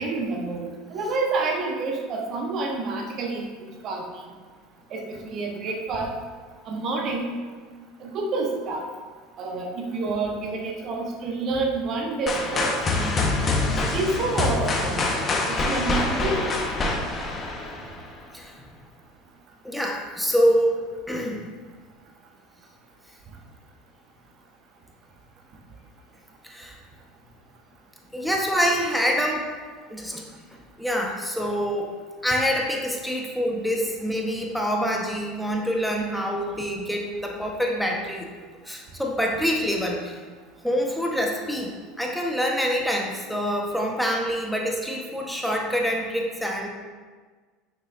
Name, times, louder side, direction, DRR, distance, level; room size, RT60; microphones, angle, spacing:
voice 1, 0.0-3.5 3.8-4.0 4.9-6.1 6.6-7.3 8.0-8.9 9.4-13.1 13.7-16.6, right 3 dB, 45° right, 1 dB, 1.2 m, -28 dB
sound 1, 12.3-18.2, left 3 dB, 30° left, 1.2 m, -25 dB
voice 2, 19.6-20.8 21.1-21.4 26.4-26.8 28.1-29.5 29.9-30.3 30.8-31.9 32.2-38.3 38.7-40.2 40.6-46.7, equal, ahead, 0 dB, 1.1 m, -26 dB
9.2 x 6.9 x 2.6 m, 1.5 s
figure-of-eight pair, 75°, 0 cm